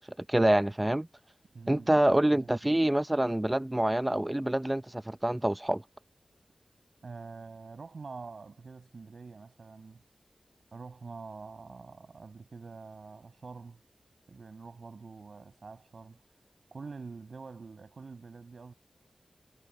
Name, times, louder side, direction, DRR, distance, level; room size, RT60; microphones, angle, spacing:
voice 1, 0.3-1.1 1.7-5.8, right 1 dB, 15° right, 0.7 m, -26 dB
voice 2, 1.5-2.0 2.4-2.8 7.0-10.0 10.7-13.8 14.3-16.2 16.7-18.7, right 4 dB, 70° right, 7.4 m, -46 dB
wide cardioid pair, 95°, 0 cm